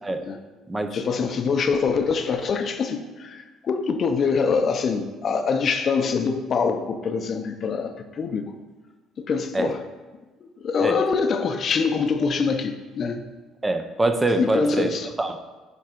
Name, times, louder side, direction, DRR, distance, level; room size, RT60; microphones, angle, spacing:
voice 1, 0.9-8.4 9.2-9.8 10.4-13.2 14.4-15.1, left 5 dB, 45° left, 7 dB, 0.6 m, -24 dB
voice 2, 13.6-15.4, right 2 dB, 15° right, 7 dB, 0.5 m, -24 dB
9.2 x 3.5 x 4.5 m, 1.2 s
cardioid pair, 100°, 0 cm